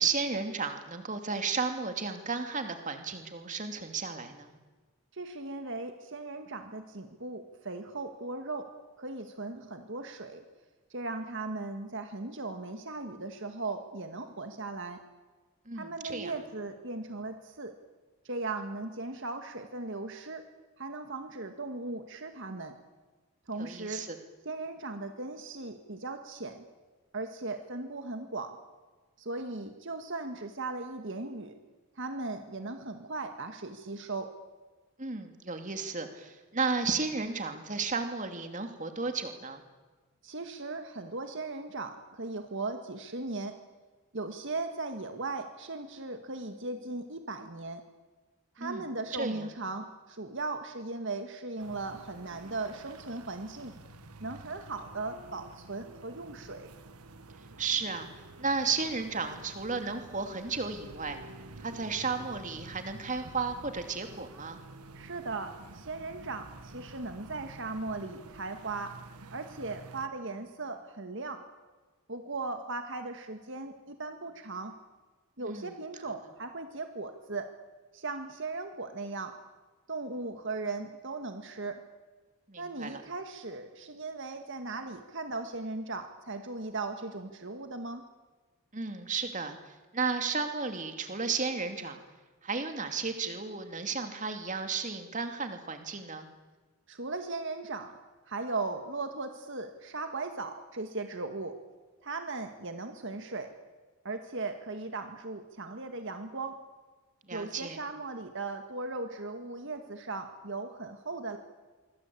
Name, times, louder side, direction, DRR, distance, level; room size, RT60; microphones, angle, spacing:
voice 1, 0.0-4.5 15.7-16.3 23.5-24.2 35.0-39.6 48.6-48.8 49.1-49.5 57.6-58.1 58.4-61.2 61.6-64.6 75.4-75.7 76.0-76.1 82.5-83.0 88.7-92.0 92.4-96.3 107.3-107.8, right 4 dB, 35° right, 7 dB, 2.7 m, -33 dB
voice 2, 5.1-8.7 9.0-10.4 10.9-15.0 15.8-17.7 18.2-20.5 20.8-22.8 23.5-24.0 24.5-26.6 27.1-28.6 29.2-31.6 32.0-34.3 40.2-43.6 44.1-47.8 48.6-53.7 54.2-56.7 64.9-69.0 69.3-71.4 72.1-74.7 75.4-77.5 77.9-79.4 79.9-81.8 82.6-88.0 96.9-97.9 98.3-101.6 102.0-103.5 104.0-106.6 107.3-111.4, right 3 dB, 55° right, 6 dB, 1.9 m, -38 dB
sound 1, 51.6-70.1, right 2 dB, 90° right, 1.6 m, -50 dB
25.5 x 24.5 x 8.7 m, 1.3 s
head